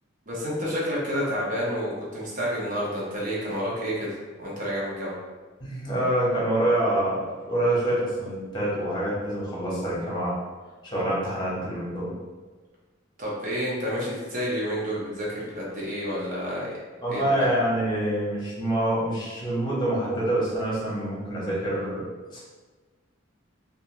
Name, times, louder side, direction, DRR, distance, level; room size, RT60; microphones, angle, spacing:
voice 1, 0.3-5.2 13.2-16.7 17.1-17.5, equal, 45° right, -5 dB, 0.8 m, -29 dB
voice 2, 5.6-10.3 10.8-12.1 17.0-22.0 22.3-22.4, right 1 dB, 25° left, -6 dB, 1.0 m, -26 dB
2.7 x 2.4 x 2.9 m, 1.3 s
head